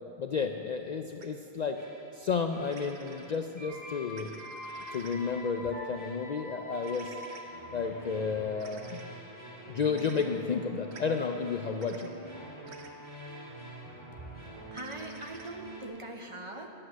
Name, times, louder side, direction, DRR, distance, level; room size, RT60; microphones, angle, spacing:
voice 1, 0.2-1.8 2.1-4.3 4.9-7.1 7.7-9.0 9.7-12.1, left 5 dB, 55° left, 5 dB, 0.5 m, -32 dB
sound 1, 1.2-1.3 2.7-3.4 4.1-5.2 6.8-7.4 8.6-9.0 9.9-10.2 10.9-11.0 11.8-12.1 12.7-12.9 14.8-15.5, right 5 dB, 85° right, 1.1 m, -51 dB
sound 2, 1.7-2.1 2.5-15.9, right 1 dB, 15° right, 2.8 m, -45 dB
voice 2, 14.7-16.7, right 1 dB, 35° right, 3 dB, 0.8 m, -41 dB
11.5 x 8.7 x 6.3 m, 2.9 s
omnidirectional pair, 1.1 m